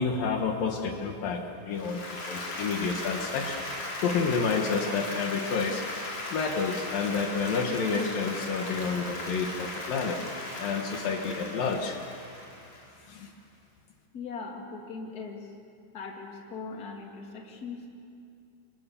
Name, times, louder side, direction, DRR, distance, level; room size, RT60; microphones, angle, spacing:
voice 1, 0.0-3.6 4.0-10.2 10.6-12.0 13.1-13.3, left 5 dB, 65° left, 3 dB, 3.0 m, -30 dB
Applause, 1.7-13.1, left 2 dB, 45° left, 5.3 m, -37 dB
voice 2, 14.1-15.5 15.9-17.9, left 4 dB, 25° left, 1 dB, 2.7 m, -40 dB
29.5 x 25.5 x 7.1 m, 2.5 s
omnidirectional pair, 4.5 m